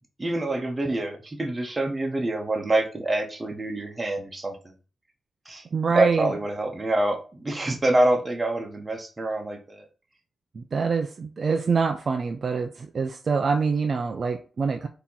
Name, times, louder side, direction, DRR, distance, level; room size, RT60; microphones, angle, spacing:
voice 1, 0.2-4.6 5.5-5.6 5.9-9.8, right 1 dB, 25° right, 0.9 m, -26 dB
voice 2, 5.7-6.3 10.5-14.9, right 5 dB, 50° right, 0.4 m, -25 dB
4.3 x 2.9 x 3.8 m
cardioid pair, 95°, 0 cm